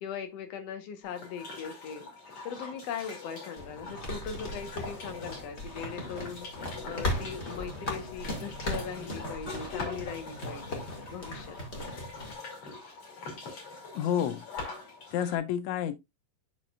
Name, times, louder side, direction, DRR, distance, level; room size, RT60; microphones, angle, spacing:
voice 1, 0.0-2.1 2.4-6.5 6.8-11.9, left 7 dB, 60° left, 1.9 m, -40 dB
sound 1, 1.0-15.4, left 3 dB, 45° left, 3.5 m, -44 dB
sound 2, 3.6-12.3, left 1 dB, 25° left, 1.7 m, -38 dB
voice 2, 13.9-14.4 15.1-16.0, left 9 dB, 85° left, 1.6 m, -29 dB
12.0 x 4.2 x 2.4 m
omnidirectional pair, 3.9 m